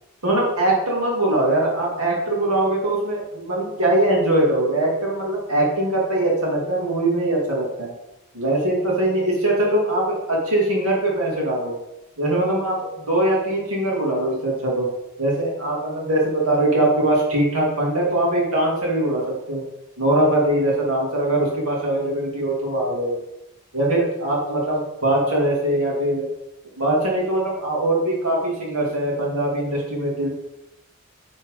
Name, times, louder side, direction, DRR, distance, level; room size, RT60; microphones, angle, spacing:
voice 1, 0.2-7.9 8.3-11.7 12.2-12.8 13.1-14.9 15.2-19.6 20.0-23.2 23.7-26.3 26.8-30.3, right 1 dB, 85° right, -4 dB, 2.7 m, -21 dB
9.9 x 4.5 x 3.9 m, 0.93 s
head